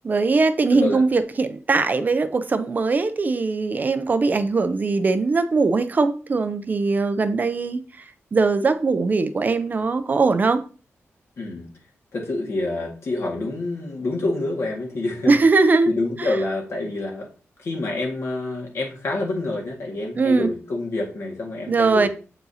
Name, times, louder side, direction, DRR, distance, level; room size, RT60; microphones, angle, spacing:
voice 1, 0.0-7.8 8.3-10.6 15.3-15.9 16.2-16.4 20.2-20.5 21.7-22.1, right 3 dB, 35° right, 0.4 m, -20 dB
voice 2, 0.7-1.0 11.4-11.7 12.1-15.4 15.9-17.3 17.6-22.1, left 2 dB, 65° left, 1.8 m, -27 dB
7.7 x 4.7 x 2.8 m
wide cardioid pair, 165°, 5 cm